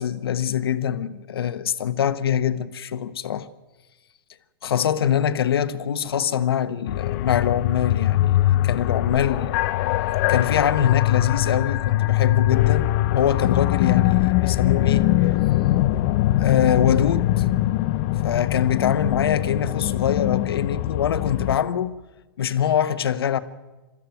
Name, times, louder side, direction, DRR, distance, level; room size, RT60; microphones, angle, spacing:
voice 1, 0.0-3.5 4.6-9.6 10.1-15.3 16.4-17.4 18.2-22.0 22.4-23.4, left 9 dB, 85° left, 1.3 m, -23 dB
sound 1, 6.9-21.6, left 15 dB, 50° left, 0.8 m, -22 dB
22.0 x 14.0 x 9.2 m
hypercardioid pair, 135°, 12 cm